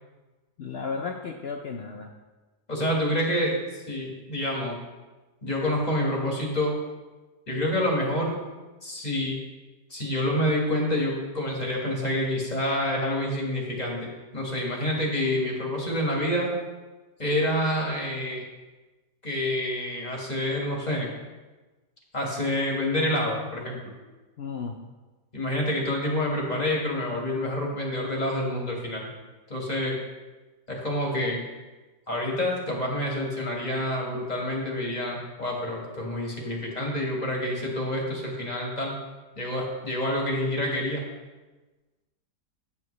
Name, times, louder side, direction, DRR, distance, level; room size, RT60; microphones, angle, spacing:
voice 1, 0.6-2.1 24.4-24.8, left 5 dB, 75° left, 3 dB, 0.5 m, -34 dB
voice 2, 2.7-3.6 3.9-4.8 5.4-6.7 7.5-8.3 8.8-9.4 9.9-16.5 17.2-18.4 19.2-21.1 22.1-23.8 25.3-29.1 29.5-30.0 30.7-31.4 32.1-38.9 39.3-41.0, left 1 dB, 25° left, -2 dB, 1.6 m, -27 dB
8.8 x 8.4 x 3.2 m, 1.2 s
omnidirectional pair, 1.7 m